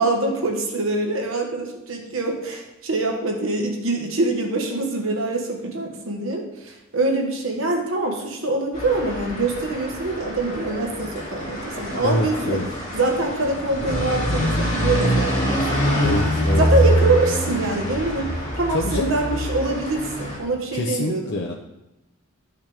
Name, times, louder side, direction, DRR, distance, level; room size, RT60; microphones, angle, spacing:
voice 1, 0.0-12.6 12.9-16.1 16.6-21.4, right 2 dB, 70° right, 1 dB, 1.5 m, -24 dB
sound 1, 8.7-20.4, equal, 35° left, 2.6 m, -24 dB
voice 2, 12.0-12.7 16.0-16.6 18.7-19.1 20.7-21.5, left 1 dB, 55° left, 0 dB, 0.7 m, -25 dB
12.0 x 5.7 x 3.5 m, 0.94 s
head